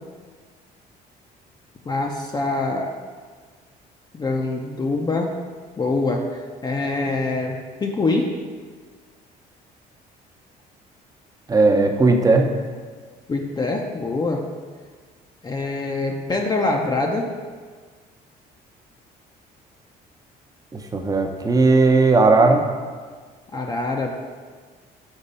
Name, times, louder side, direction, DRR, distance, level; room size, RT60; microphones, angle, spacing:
voice 1, 1.9-2.9 4.1-5.3 5.8-8.3 13.3-14.4 15.4-17.3 23.5-24.1, left 3 dB, 25° left, 1 dB, 0.6 m, -24 dB
voice 2, 11.5-12.5 20.7-22.6, right 3 dB, 20° right, 4 dB, 0.7 m, -16 dB
5.4 x 4.0 x 5.4 m, 1.5 s
cardioid pair, 110°, 17 cm